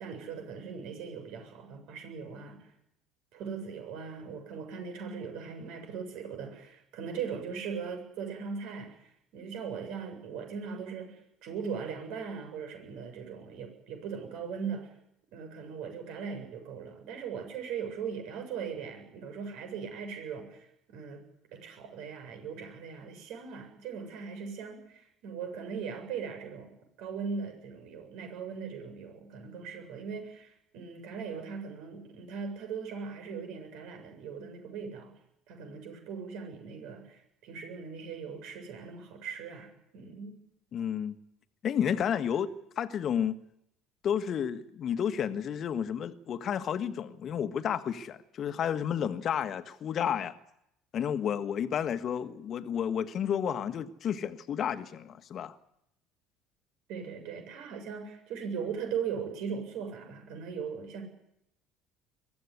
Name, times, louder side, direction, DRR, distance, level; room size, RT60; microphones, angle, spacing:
voice 1, 0.0-2.7 3.3-14.9 15.3-21.2 21.5-35.1 35.5-40.4 56.9-61.0, right 6 dB, 65° right, 7.5 m, -39 dB
voice 2, 40.7-41.2 41.6-42.5 42.8-43.4 44.0-50.3 50.9-55.6, left 8 dB, 45° left, 1.6 m, -31 dB
23.0 x 15.5 x 9.8 m
hypercardioid pair, 65°, 0 cm